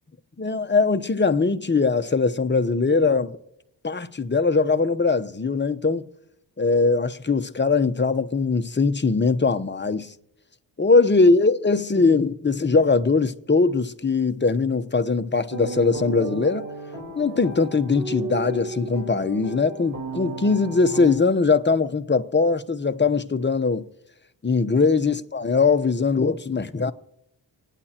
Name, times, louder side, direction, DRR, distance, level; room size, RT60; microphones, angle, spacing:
voice 1, 0.4-3.4 3.8-6.1 6.6-10.1 10.8-16.6 17.2-23.8 24.4-26.9, left 4 dB, 25° left, 0.9 m, -21 dB
sound 1, 15.5-21.1, right 2 dB, 40° right, 3.6 m, -33 dB
30.0 x 10.0 x 2.9 m
cardioid pair, 55°, 45 cm